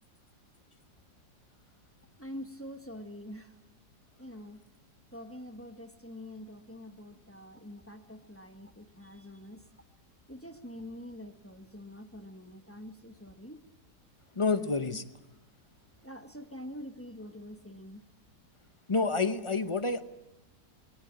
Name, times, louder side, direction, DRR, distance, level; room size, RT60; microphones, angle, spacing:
voice 1, 2.2-3.6 4.2-4.6 5.1-9.7 10.3-13.6 14.5-15.0 16.0-18.0, left 1 dB, 10° left, 7 dB, 0.9 m, -45 dB
voice 2, 14.4-15.0 18.9-20.0, left 4 dB, 30° left, 9 dB, 0.6 m, -28 dB
21.5 x 18.0 x 8.6 m, 1.0 s
omnidirectional pair, 1.8 m